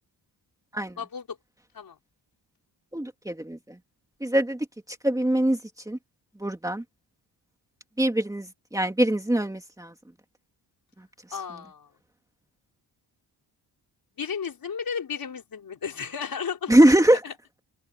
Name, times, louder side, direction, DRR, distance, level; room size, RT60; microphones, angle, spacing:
voice 1, 1.0-1.4 1.7-2.0 11.3-11.9 14.2-17.3, left 6 dB, 55° left, 5.2 m, -34 dB
voice 2, 2.9-3.8 4.2-4.7 5.0-5.6 5.9-6.0 6.4-6.8 8.0-9.9 16.7-17.2, right 1 dB, 10° right, 2.4 m, -22 dB
open air
wide cardioid pair, 155°, 41 cm